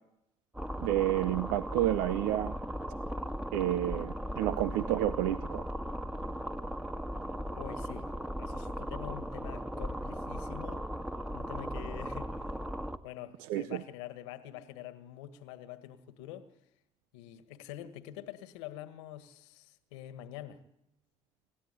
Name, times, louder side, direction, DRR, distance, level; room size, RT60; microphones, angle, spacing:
sound 1, 0.5-13.0, equal, 5° right, 1.7 m, -37 dB
voice 1, 0.8-2.5 3.5-5.6 13.5-13.8, right 14 dB, 75° right, 13 dB, 0.8 m, -30 dB
voice 2, 7.5-8.1 8.4-10.8 11.3-12.6 13.0-16.5 17.1-20.6, left 11 dB, 85° left, 11 dB, 1.8 m, -46 dB
28.0 x 14.0 x 9.5 m, 0.85 s
hypercardioid pair, 55°, 15 cm